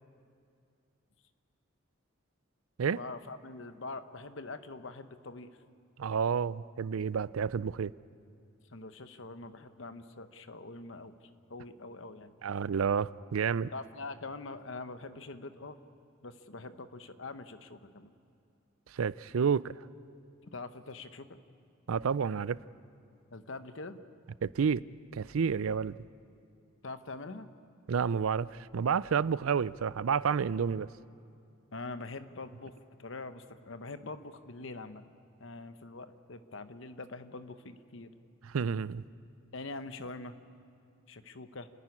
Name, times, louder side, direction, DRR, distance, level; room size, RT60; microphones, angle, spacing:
voice 1, 2.9-5.6 8.7-12.3 13.7-15.8 16.2-18.1 20.5-21.4 23.3-24.0 26.8-27.5 31.7-35.1 35.4-38.1 39.5-40.3 41.1-41.7, left 3 dB, 65° left, 1.0 m, -44 dB
voice 2, 6.0-7.9 12.4-13.7 18.9-19.7 21.9-22.6 24.4-24.8 25.1-26.0 27.9-30.9 38.5-39.0, right 6 dB, 90° right, 0.4 m, -30 dB
30.0 x 10.5 x 9.8 m
head